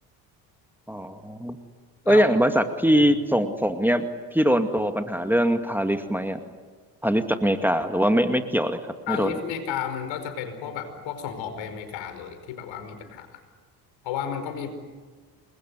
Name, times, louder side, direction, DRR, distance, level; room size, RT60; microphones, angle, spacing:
voice 1, 0.9-1.6 2.1-4.0 4.3-6.4 7.0-8.8 9.1-9.3, equal, 5° right, 7 dB, 2.2 m, -22 dB
voice 2, 9.1-13.4 14.0-14.7, left 8 dB, 70° left, 8 dB, 5.0 m, -33 dB
28.0 x 21.5 x 9.7 m, 1.4 s
hypercardioid pair, 60°, 47 cm